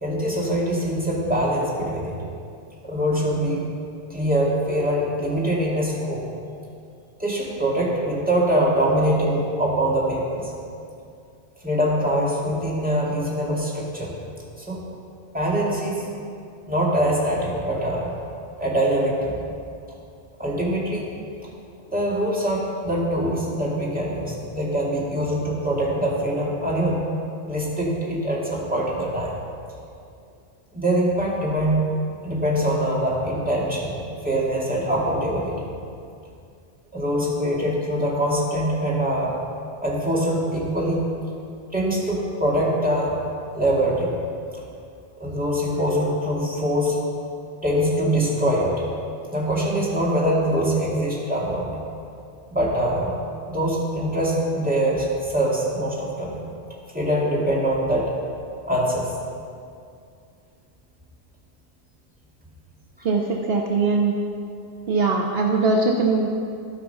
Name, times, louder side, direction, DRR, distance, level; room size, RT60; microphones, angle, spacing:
voice 1, 0.0-2.2 2.8-3.6 4.1-6.2 7.2-10.5 11.6-14.1 14.6-14.8 15.3-16.1 16.7-18.1 18.6-19.4 20.4-21.1 21.9-27.0 27.5-29.3 30.7-31.9 32.2-33.9 34.2-35.6 36.9-39.3 39.8-41.0 41.7-43.1 43.5-44.1 45.2-47.0 47.6-48.7 49.3-51.7 52.5-53.1 53.5-56.4 56.9-58.1 58.7-59.1, right 1 dB, 10° right, -5 dB, 2.0 m, -23 dB
voice 2, 63.0-64.2 64.9-66.3, right 3 dB, 65° right, 2 dB, 0.9 m, -21 dB
13.0 x 5.7 x 5.5 m, 2.4 s
omnidirectional pair, 1.1 m